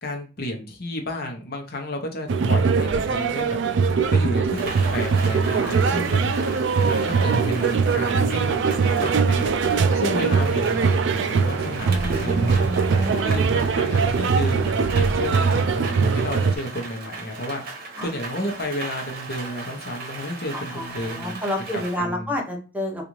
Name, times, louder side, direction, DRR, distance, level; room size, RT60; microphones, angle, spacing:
voice 1, 0.0-3.6 4.1-6.2 6.9-9.5 9.9-12.7 13.2-17.6 18.0-21.4 21.7-22.3, left 1 dB, 55° left, 3 dB, 0.8 m, -32 dB
sound 1, 2.3-16.5, right 5 dB, 70° right, 0.3 m, -21 dB
Rain, 4.5-22.0, right 3 dB, 55° right, 0.8 m, -37 dB
voice 2, 10.0-10.3 11.8-13.3 18.0-18.1 20.5-23.1, left 1 dB, 10° right, 0 dB, 0.9 m, -30 dB
3.8 x 2.5 x 3.0 m, 0.33 s
head